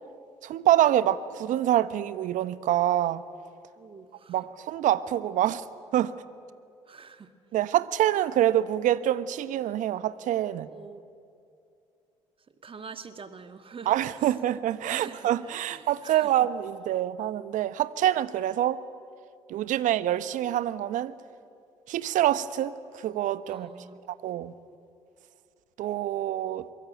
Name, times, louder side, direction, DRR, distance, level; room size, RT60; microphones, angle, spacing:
voice 1, 0.4-3.2 4.3-5.6 5.9-6.1 7.5-10.7 13.9-18.8 19.5-21.1 21.9-23.7 24.2-24.5 25.8-26.7, right 12 dB, 60° right, 1.0 m, -26 dB
voice 2, 3.8-4.4 6.9-7.3 10.5-11.0 12.6-13.9 14.9-16.3 23.5-24.0, right 5 dB, 40° right, 1.8 m, -45 dB
23.0 x 23.0 x 9.1 m
hypercardioid pair, 50°, 14 cm